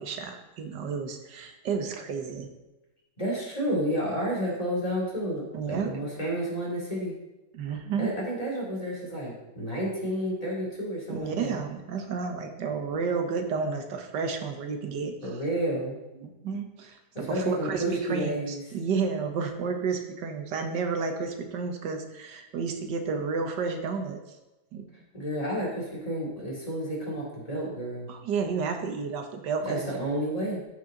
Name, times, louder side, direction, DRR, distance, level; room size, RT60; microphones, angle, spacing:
voice 1, 0.0-2.5 5.5-5.9 7.5-8.1 11.1-15.1 16.2-24.2 24.7-24.9 28.1-29.9, right 5 dB, 90° right, 5 dB, 1.7 m, -31 dB
voice 2, 3.2-7.1 8.0-11.6 15.2-16.0 17.1-18.6 25.1-28.1 29.6-30.7, equal, 20° left, -5 dB, 3.0 m, -31 dB
14.5 x 5.7 x 3.8 m, 1.0 s
omnidirectional pair, 1.8 m